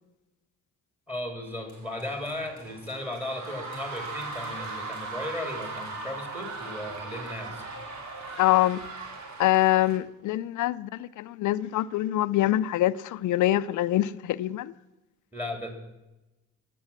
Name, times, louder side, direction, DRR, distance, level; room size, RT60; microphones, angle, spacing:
voice 1, 1.1-7.6 15.3-15.7, left 1 dB, 5° right, 3.7 m, -36 dB
sound 1, 1.7-10.0, right 3 dB, 70° right, 2.7 m, -39 dB
voice 2, 8.4-8.8 9.4-14.7, left 14 dB, 75° left, 0.6 m, -24 dB
20.0 x 8.6 x 7.5 m
cardioid pair, 90°, 30 cm